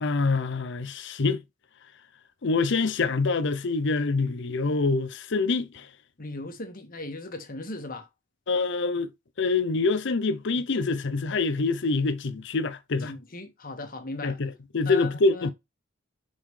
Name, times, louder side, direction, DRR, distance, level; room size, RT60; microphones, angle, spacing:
voice 1, 0.0-1.4 2.4-5.9 8.5-9.1 9.4-13.1 14.2-15.5, left 3 dB, 65° left, 0.7 m, -25 dB
voice 2, 6.2-8.1 13.0-14.4 14.8-15.5, left 2 dB, 45° left, 1.6 m, -38 dB
5.4 x 5.4 x 3.3 m
head